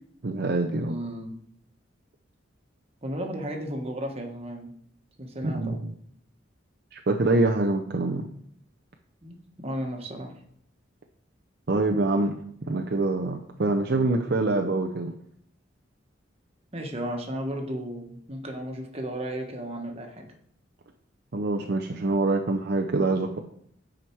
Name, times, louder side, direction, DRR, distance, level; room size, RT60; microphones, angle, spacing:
voice 1, 0.2-0.9 5.4-5.9 6.9-8.3 11.7-12.4 12.7-15.1 21.3-23.4, right 2 dB, 55° right, 3 dB, 0.6 m, -25 dB
voice 2, 0.8-1.3 3.0-4.7 5.2-5.9 9.2-10.3 16.7-20.3, equal, 30° right, 2 dB, 1.3 m, -34 dB
8.9 x 5.0 x 4.6 m, 0.65 s
head